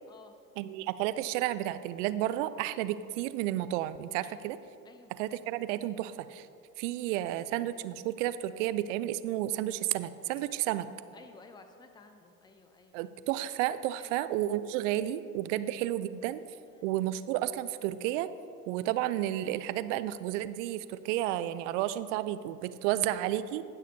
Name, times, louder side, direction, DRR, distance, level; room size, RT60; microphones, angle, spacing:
voice 1, 0.6-4.6 5.2-6.5 6.8-10.9 12.9-16.4 16.8-18.3 18.7-23.6, right 13 dB, 55° right, 14 dB, 0.5 m, -32 dB
voice 2, 11.1-13.0 14.0-14.2 15.5-15.7 16.7-16.9 22.9-23.0, left 4 dB, 10° left, 7 dB, 0.6 m, -55 dB
17.0 x 6.3 x 2.7 m, 2.4 s
figure-of-eight pair, 75°, 46 cm